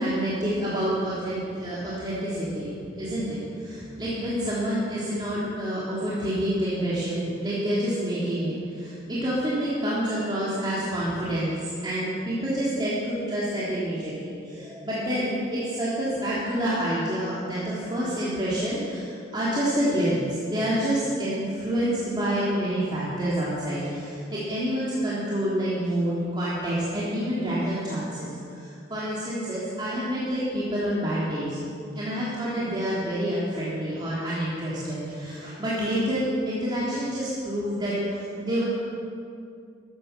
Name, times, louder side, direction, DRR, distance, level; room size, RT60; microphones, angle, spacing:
voice 1, 0.0-2.7 3.0-31.6 31.9-38.6, equal, 25° right, -9 dB, 3.1 m, -28 dB
15.0 x 13.0 x 6.9 m, 2.4 s
head